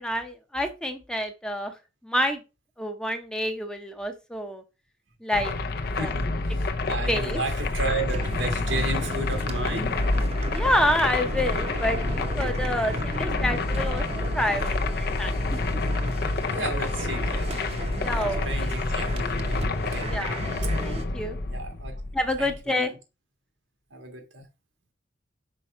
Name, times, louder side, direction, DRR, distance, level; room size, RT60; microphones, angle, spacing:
voice 1, 0.0-1.7 2.0-2.4 2.8-4.6 5.2-5.5 6.0-6.1 7.1-7.4 10.5-15.6 18.0-18.7 20.1-20.4 20.8-21.4 22.1-22.9, left 1 dB, 5° left, 0.7 m, -28 dB
sound 1, 5.3-22.6, left 2 dB, 55° left, 0.6 m, -28 dB
voice 2, 5.9-10.0 12.9-13.0 16.1-16.2 16.5-17.5 18.4-20.2 21.5-22.0 22.4-22.9 23.9-24.5, right 2 dB, 90° right, 1.7 m, -33 dB
sound 2, 8.1-21.0, right 2 dB, 35° right, 0.7 m, -37 dB
5.7 x 4.5 x 4.2 m
head